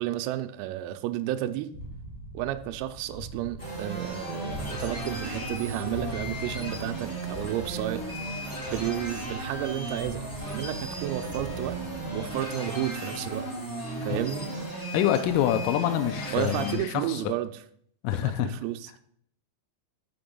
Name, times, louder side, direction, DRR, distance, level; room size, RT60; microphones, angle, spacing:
voice 1, 0.0-1.7 2.3-8.0 8.3-11.8 12.1-13.5 14.0-14.5 16.3-17.6 18.1-19.0, right 13 dB, 85° right, 9 dB, 3.3 m, -32 dB
sound 1, 1.7-12.4, right 1 dB, 45° left, 2.8 m, -43 dB
sound 2, 3.6-16.8, right 1 dB, 20° left, 1.9 m, -35 dB
voice 2, 14.9-17.2 18.0-18.5, left 12 dB, 85° left, 7 dB, 3.2 m, -26 dB
6.9 x 5.9 x 5.3 m, 0.64 s
omnidirectional pair, 6.0 m